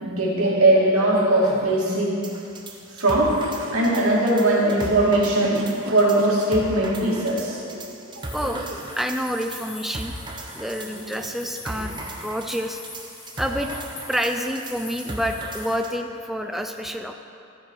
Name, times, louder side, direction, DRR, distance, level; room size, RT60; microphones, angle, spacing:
voice 1, 0.0-2.1 3.0-3.4 3.7-5.6 5.9-7.6 8.2-8.3, right 1 dB, 90° right, -5 dB, 2.4 m, -20 dB
sound 1, 1.1-1.8 3.2-3.9 5.1-6.9 8.4-9.1 10.9-11.4 11.7-12.1 13.5-13.9, right 2 dB, 65° right, 1.0 m, -39 dB
sound 2, 2.2-15.9, right 2 dB, 20° right, 0.8 m, -38 dB
sound 3, 8.2-15.7, left 3 dB, 55° left, 2.4 m, -43 dB
voice 2, 8.3-8.7 9.0-12.8 13.4-13.7 14.1-17.1, equal, ahead, 5 dB, 0.3 m, -28 dB
13.0 x 7.0 x 4.7 m, 2.7 s
head